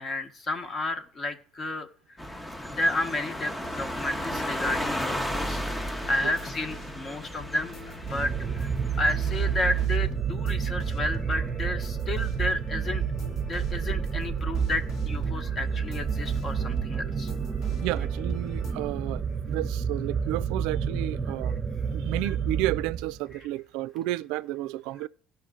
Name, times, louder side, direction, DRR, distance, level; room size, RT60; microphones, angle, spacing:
voice 1, 0.0-1.9 2.3-5.7 6.1-8.7 9.0-13.0 13.4-17.3, left 1 dB, 40° left, 1.1 m, -31 dB
sound 1, 2.2-9.9, equal, 10° left, 0.7 m, -34 dB
sound 2, 3.6-18.7, left 1 dB, 65° left, 1.6 m, -44 dB
sound 3, 8.0-23.3, right 7 dB, 30° right, 0.6 m, -29 dB
voice 2, 17.8-21.6 21.9-25.1, right 16 dB, 85° right, 0.3 m, -32 dB
16.0 x 5.7 x 3.7 m
cardioid pair, 105°, 0 cm